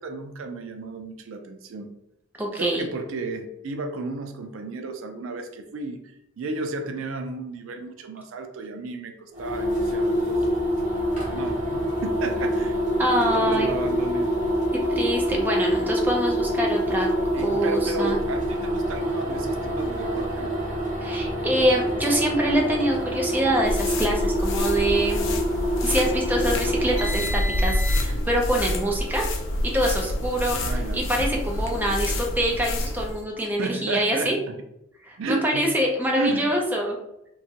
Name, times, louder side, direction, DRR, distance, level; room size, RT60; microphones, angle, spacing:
voice 1, 0.0-1.9 2.6-6.0 6.4-10.4 11.3-13.1 13.3-14.3 17.3-20.5 30.5-31.0 33.6-34.5 35.2-35.8 36.1-36.6, right 3 dB, 80° right, 5 dB, 0.4 m, -33 dB
voice 2, 2.4-2.9 13.0-13.7 14.9-17.1 17.4-18.2 21.0-25.4 25.8-29.3 29.6-34.4 35.0-37.0, right 1 dB, 10° right, 0 dB, 0.4 m, -25 dB
sound 1, 9.3-28.3, equal, 35° right, 1.0 m, -26 dB
sound 2, 23.7-33.2, left 1 dB, 70° left, 0.4 m, -27 dB
2.8 x 2.3 x 2.7 m, 0.83 s
head